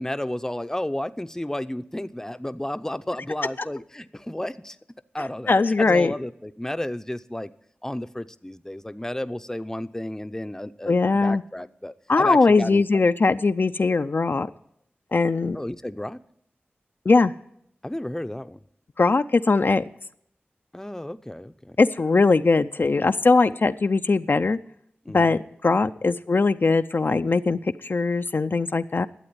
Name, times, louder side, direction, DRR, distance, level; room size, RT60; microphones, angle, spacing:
voice 1, 0.0-4.8 5.1-7.5 7.8-13.0 15.5-16.2 17.8-18.6 20.7-21.8 25.1-25.4, left 1 dB, 10° left, 11 dB, 0.6 m, -32 dB
voice 2, 5.5-6.1 10.9-11.4 12.1-14.5 15.1-15.6 17.1-17.3 19.0-19.8 21.8-24.6 25.1-29.1, left 3 dB, 60° left, 9 dB, 0.5 m, -20 dB
12.0 x 8.1 x 9.5 m, 0.71 s
cardioid pair, 40°, 4 cm